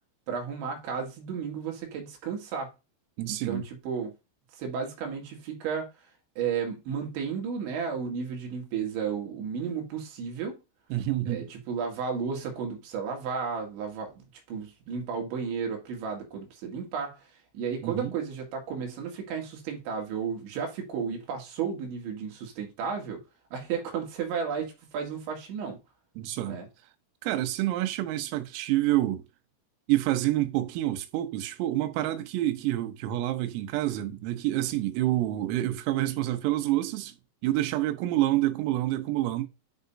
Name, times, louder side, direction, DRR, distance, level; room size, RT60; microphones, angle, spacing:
voice 1, 0.3-2.7 3.3-4.1 4.5-5.9 6.4-10.6 11.3-17.3 17.5-23.2 23.5-25.8 26.5-26.7, right 6 dB, 70° right, 4.1 m, -33 dB
voice 2, 3.2-3.6 10.9-11.5 17.8-18.1 26.2-26.6 27.2-29.2 29.9-37.2 37.4-39.5, right 15 dB, 90° right, 3.7 m, -28 dB
9.9 x 6.6 x 2.7 m
omnidirectional pair, 5.8 m